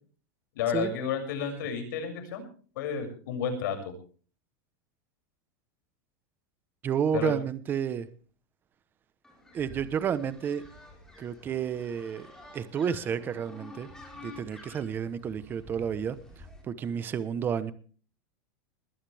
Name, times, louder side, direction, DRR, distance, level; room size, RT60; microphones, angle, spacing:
voice 1, 0.6-2.4 2.8-3.9 7.1-7.3, left 7 dB, 65° left, 6.9 m, -31 dB
voice 2, 6.8-8.1 9.5-10.6 11.2-12.3 12.5-13.9 14.2-16.2 16.7-17.7, right 8 dB, 20° right, 1.0 m, -30 dB
sound 1, 9.2-16.6, left 2 dB, 5° left, 4.5 m, -50 dB
20.5 x 18.5 x 3.5 m
supercardioid pair, 170°, 11 cm